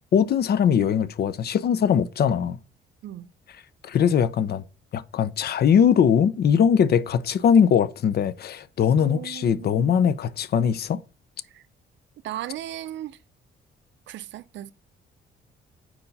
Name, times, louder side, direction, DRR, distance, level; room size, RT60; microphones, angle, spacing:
voice 1, 0.1-2.6 3.8-4.6 4.9-11.0, left 7 dB, 55° left, 0.5 m, -21 dB
voice 2, 8.9-9.9 11.5-11.6 12.2-13.2 14.1-14.7, right 13 dB, 65° right, 0.4 m, -36 dB
4.4 x 4.3 x 5.2 m
cardioid pair, 90°, 20 cm